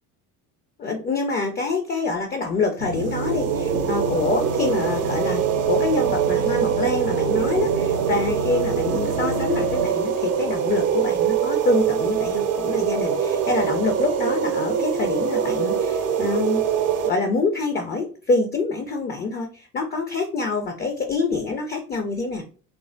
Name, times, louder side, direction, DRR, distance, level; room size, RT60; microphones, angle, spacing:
voice 1, 0.8-16.6 17.1-22.4, left 3 dB, 20° left, 4 dB, 0.4 m, -26 dB
sound 1, 2.8-9.9, right 2 dB, 85° right, 0.7 m, -31 dB
sound 2, 2.9-17.1, right 8 dB, 35° right, 0.5 m, -23 dB
3.2 x 2.2 x 2.5 m, 0.40 s
hypercardioid pair, 65°, 48 cm